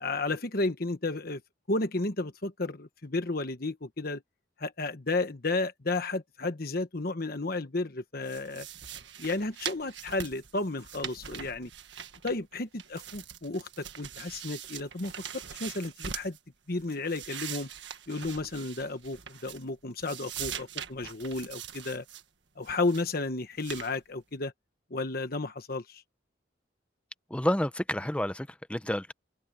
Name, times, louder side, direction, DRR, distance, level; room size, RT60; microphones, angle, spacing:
voice 1, 0.0-1.4 1.7-4.2 4.6-8.7 9.2-11.7 12.2-16.4 16.7-17.7 18.1-22.0 22.6-24.5 24.9-26.0, left 2 dB, 50° left, 1.2 m, -32 dB
sound 1, 8.2-12.5 12.8-16.4 16.8-19.7 20.0-22.2 22.6-23.1 23.6-23.9, right 9 dB, 75° right, 1.7 m, -42 dB
voice 2, 27.3-29.1, left 1 dB, 5° left, 0.7 m, -29 dB
head